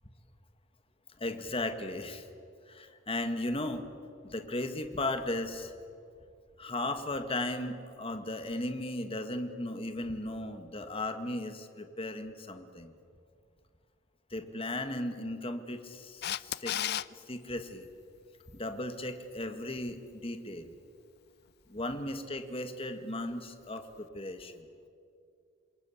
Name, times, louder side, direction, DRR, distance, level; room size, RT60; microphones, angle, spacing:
voice 1, 1.2-2.3 2.7-3.9 4.2-5.7 6.6-13.0 14.3-16.7 17.1-17.9 18.5-20.7 21.7-24.7, left 1 dB, 25° left, 7 dB, 1.7 m, -36 dB
Camera, 16.2-17.1 23.8-23.9, left 11 dB, 55° left, 0.5 m, -32 dB
28.0 x 21.5 x 8.6 m, 2.4 s
head